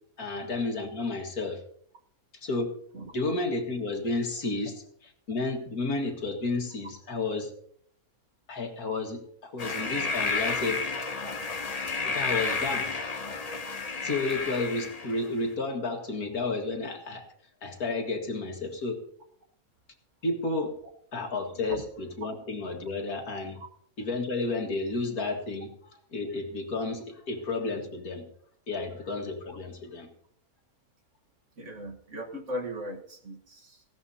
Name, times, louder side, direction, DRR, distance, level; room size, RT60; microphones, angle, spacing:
voice 1, 0.2-1.6 2.3-2.7 3.1-4.8 5.3-7.5 8.5-10.8 12.1-12.9 14.0-17.3 17.6-19.0 20.2-20.7 21.1-23.6 24.0-25.7 26.1-28.3 28.7-30.1, left 3 dB, 65° left, 3 dB, 2.3 m, -31 dB
sound 1, 9.6-15.3, left 4 dB, 35° left, 0.7 m, -31 dB
voice 2, 31.6-33.8, equal, 50° right, 2 dB, 1.8 m, -38 dB
18.5 x 16.0 x 2.8 m, 0.64 s
omnidirectional pair, 1.7 m